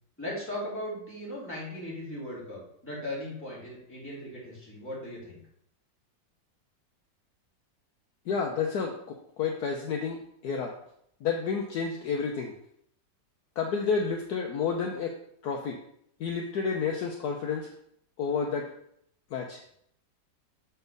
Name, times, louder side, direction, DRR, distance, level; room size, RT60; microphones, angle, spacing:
voice 1, 0.2-5.4, left 1 dB, 5° left, -7 dB, 2.6 m, -38 dB
voice 2, 8.3-10.8 11.2-12.5 13.6-15.2 15.4-15.8 16.2-17.7 18.2-18.7 19.3-19.6, left 5 dB, 65° left, 1 dB, 1.2 m, -30 dB
6.9 x 4.4 x 5.2 m, 0.71 s
omnidirectional pair, 2.0 m